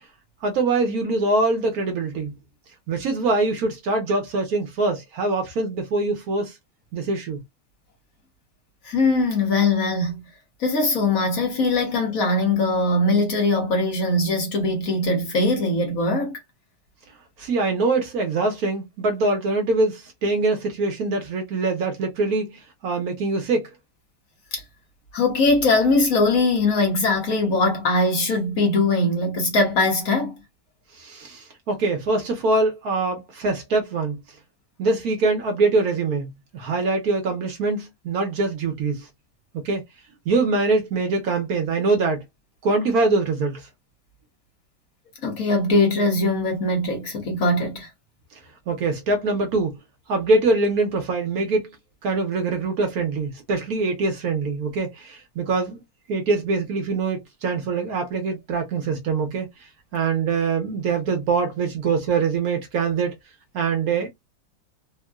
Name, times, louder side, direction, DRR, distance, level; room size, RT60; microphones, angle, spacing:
voice 1, 0.4-2.3 2.9-6.6 6.9-7.4 17.4-23.7 30.9-34.2 34.8-39.1 39.5-39.8 40.3-42.2 42.6-43.7 48.7-49.8 50.1-51.7 52.0-55.8 56.1-63.1 63.5-64.1, right 3 dB, 65° right, 1.1 m, -23 dB
voice 2, 8.8-10.2 10.6-16.4 24.5-24.6 25.1-30.3 45.2-47.9, left 2 dB, 55° left, 1.3 m, -21 dB
3.6 x 2.1 x 2.3 m
omnidirectional pair, 1.9 m